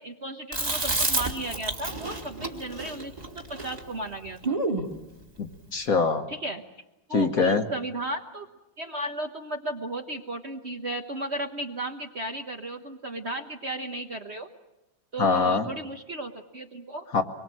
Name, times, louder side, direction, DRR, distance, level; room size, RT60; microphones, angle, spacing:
voice 1, 0.0-4.6 6.3-6.6 7.1-8.5 8.8-14.5 15.1-17.1, right 1 dB, 40° right, 4 dB, 1.1 m, -35 dB
Chewing mastication, 0.5-4.9, right 2 dB, 20° right, 1.9 m, -30 dB
voice 2, 5.4-6.3 7.1-7.6 15.2-15.7 17.1-17.2, left 4 dB, 50° left, 6 dB, 1.4 m, -23 dB
25.0 x 22.5 x 7.5 m, 0.94 s
omnidirectional pair, 2.2 m